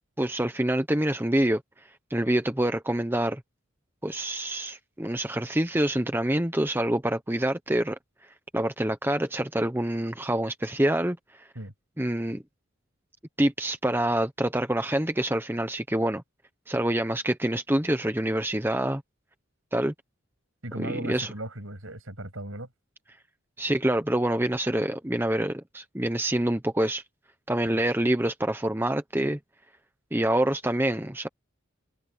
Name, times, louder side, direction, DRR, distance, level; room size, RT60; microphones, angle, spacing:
voice 1, 0.2-1.6 2.1-3.4 4.0-8.0 8.5-11.5 12.0-12.4 13.4-16.2 16.7-19.0 19.7-19.9 20.8-21.3 23.6-27.0 27.5-29.4 30.1-31.3, right 1 dB, 10° right, 0.9 m, -26 dB
voice 2, 20.6-22.7 27.7-27.8, right 1 dB, 70° right, 7.8 m, -37 dB
head